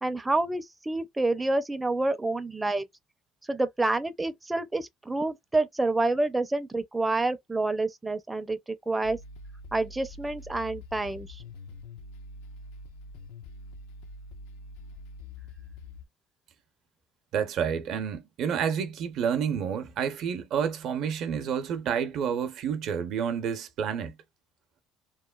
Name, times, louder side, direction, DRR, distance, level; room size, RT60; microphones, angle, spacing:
voice 1, 0.0-2.8 3.5-9.2 9.7-11.4, right 2 dB, 10° right, 0.4 m, -28 dB
sound 1, 9.0-16.1, left 2 dB, 85° left, 0.5 m, -45 dB
voice 2, 17.3-24.2, right 7 dB, 65° right, 0.6 m, -29 dB
2.9 x 2.2 x 2.2 m
supercardioid pair, 100°, 0 cm